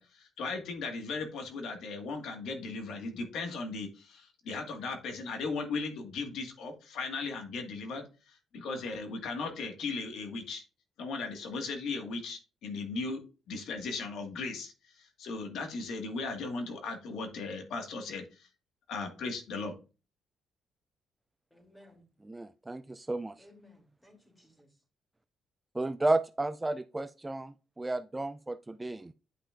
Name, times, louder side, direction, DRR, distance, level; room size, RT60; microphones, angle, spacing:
voice 1, 0.0-10.6 11.0-13.2 13.5-18.5 18.9-19.7, left 4 dB, 75° left, 1.6 m, -37 dB
voice 2, 21.5-22.0 23.4-24.7, left 1 dB, 10° left, 2.8 m, -58 dB
voice 3, 22.2-23.3 25.8-29.1, right 2 dB, 15° right, 0.3 m, -32 dB
10.0 x 5.6 x 2.4 m
cardioid pair, 90°, 0 cm